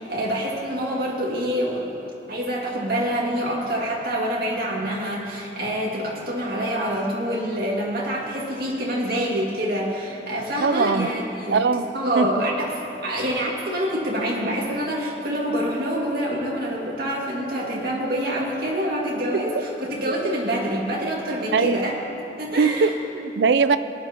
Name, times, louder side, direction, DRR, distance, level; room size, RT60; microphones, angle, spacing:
voice 1, 0.0-2.0 2.3-11.6 11.9-12.7 13.0-21.9 22.4-22.9, equal, 60° right, -4 dB, 2.1 m, -26 dB
voice 2, 10.6-11.1 11.5-11.9 12.2-12.3 20.1-20.2 21.5-21.8 22.6-23.8, right 4 dB, 80° right, 12 dB, 0.4 m, -20 dB
19.0 x 10.0 x 2.9 m, 2.9 s
head